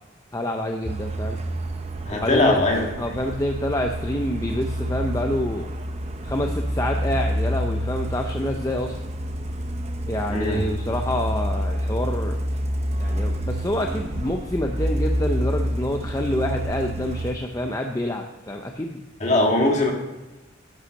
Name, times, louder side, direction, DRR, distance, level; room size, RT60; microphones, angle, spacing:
voice 1, 0.3-1.4 2.1-2.6 3.0-5.7 6.2-9.0 10.1-12.4 13.0-19.0, left 1 dB, 15° left, 3 dB, 0.6 m, -27 dB
Truck, 0.8-17.3, equal, 35° right, 0.7 m, -28 dB
voice 2, 2.1-2.9 10.3-10.6 19.2-19.9, left 2 dB, 35° left, 1 dB, 1.7 m, -20 dB
11.0 x 5.7 x 6.3 m, 1.2 s
head